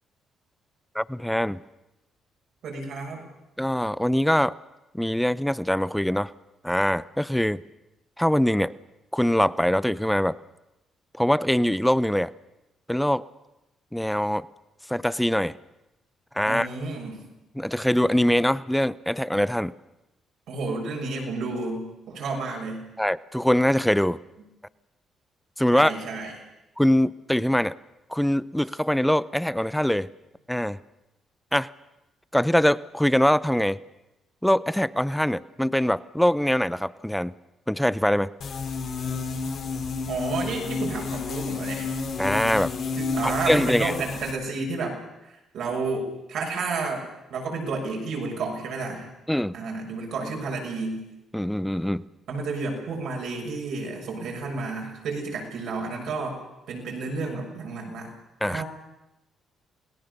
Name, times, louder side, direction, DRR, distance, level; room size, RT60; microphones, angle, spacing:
voice 1, 0.9-1.6 3.6-4.5 4.9-6.3 6.6-7.6 8.2-8.7 9.1-10.4 11.2-12.3 12.9-13.2 13.9-14.5 14.9-15.5 16.4-16.7 17.5-19.7 23.0-24.2 25.6-26.0 26.8-27.7 28.1-30.1 30.5-30.8 31.5-31.7 32.3-33.8 34.4-37.3 37.7-38.3 42.2-42.7 43.2-43.9 49.3-49.5 51.3-52.0 58.4-58.6, equal, 5° left, 19 dB, 0.7 m, -23 dB
voice 2, 2.6-3.2 16.4-17.3 20.5-22.9 25.7-26.3 40.1-41.9 43.0-49.1 49.5-51.0 52.3-56.4 56.7-58.1 58.5-58.6, right 3 dB, 75° right, 0 dB, 6.9 m, -31 dB
sound 1, 38.4-44.3, left 4 dB, 65° left, 3.6 m, -31 dB
28.0 x 18.0 x 6.9 m, 0.96 s
supercardioid pair, 60°, 0 cm